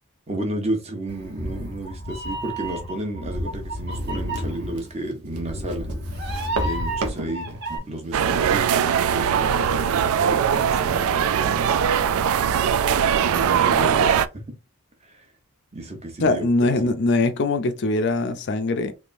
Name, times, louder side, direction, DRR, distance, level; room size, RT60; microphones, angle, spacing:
voice 1, 0.3-11.8 13.2-14.5 15.0-15.2 15.7-16.9, right 1 dB, 30° right, 1.0 m, -32 dB
Meow, 1.1-7.8, right 1 dB, 50° right, 1.3 m, -31 dB
sound 1, 3.7-8.9, right 3 dB, 85° right, 1.0 m, -36 dB
sound 2, 8.1-14.3, right 8 dB, 70° right, 0.3 m, -21 dB
voice 2, 16.2-18.9, left 2 dB, 50° left, 0.4 m, -22 dB
3.4 x 3.3 x 2.6 m
head